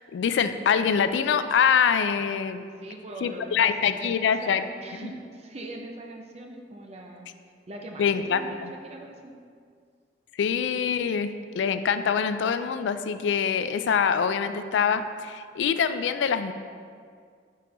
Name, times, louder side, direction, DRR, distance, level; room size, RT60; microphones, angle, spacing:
voice 1, 0.0-2.7 3.2-4.6 5.0-5.1 8.0-8.7 10.4-11.3 11.5-16.5, left 7 dB, 75° left, 10 dB, 0.3 m, -24 dB
voice 2, 2.8-7.3 7.7-9.3, right 1 dB, 35° right, 2 dB, 0.6 m, -41 dB
5.3 x 4.3 x 5.0 m, 2.1 s
head